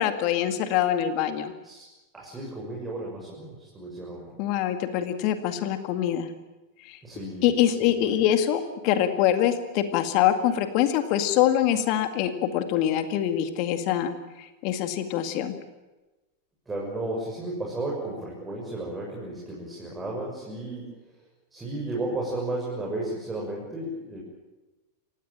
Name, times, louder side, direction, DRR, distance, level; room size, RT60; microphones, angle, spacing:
voice 1, 0.0-1.5 4.4-6.3 6.8-7.0 7.4-15.5, left 11 dB, 45° left, 9 dB, 2.0 m, -24 dB
voice 2, 2.1-4.5 7.0-7.5 7.8-8.2 16.7-20.9 21.5-24.2, right 2 dB, 15° right, -3 dB, 6.8 m, -34 dB
28.5 x 16.0 x 9.0 m, 1.1 s
figure-of-eight pair, 90°, 0 cm